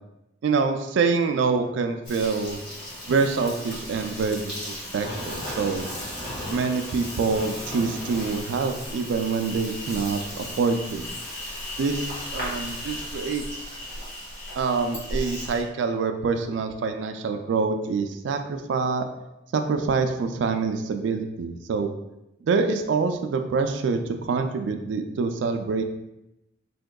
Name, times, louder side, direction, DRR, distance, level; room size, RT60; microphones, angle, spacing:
voice 1, 0.4-2.6 3.1-5.9 6.5-11.1 11.8-12.1 12.3-13.7 14.6-19.1 19.5-21.9 22.4-25.8, right 4 dB, 65° right, 7 dB, 0.3 m, -26 dB
Insect, 2.0-15.6, left 1 dB, 55° left, 1.3 m, -35 dB
3.5 x 2.8 x 2.2 m, 0.90 s
head